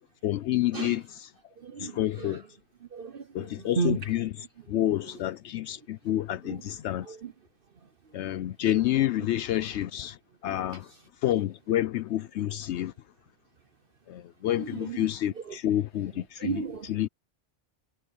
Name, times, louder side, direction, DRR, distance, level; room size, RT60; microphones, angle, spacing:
voice 1, 0.2-1.3 1.8-2.4 3.3-4.3 4.7-7.2 8.1-10.9 11.2-12.9 14.1-17.1, left 13 dB, 75° left, 0.9 m, -29 dB
voice 2, 1.6-2.4 2.9-4.0 6.4-6.6 7.0-7.3 14.5-15.0 15.4-15.6 16.4-17.1, right 5 dB, 55° right, 1.0 m, -34 dB
omnidirectional pair, 1.2 m